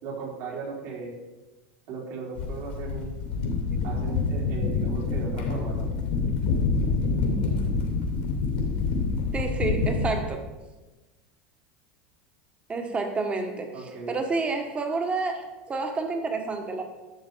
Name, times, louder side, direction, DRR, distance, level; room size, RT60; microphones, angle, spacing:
voice 1, 0.0-1.1 1.9-3.1 3.8-5.9 13.7-14.2, right 4 dB, 60° right, -3 dB, 3.8 m, -37 dB
sound 1, 2.4-10.2, left 4 dB, 80° left, 2.6 m, -27 dB
voice 2, 9.3-10.5 12.7-16.8, right 3 dB, 20° right, 5 dB, 1.6 m, -29 dB
12.0 x 6.7 x 4.7 m, 1.1 s
supercardioid pair, 120°, 5 cm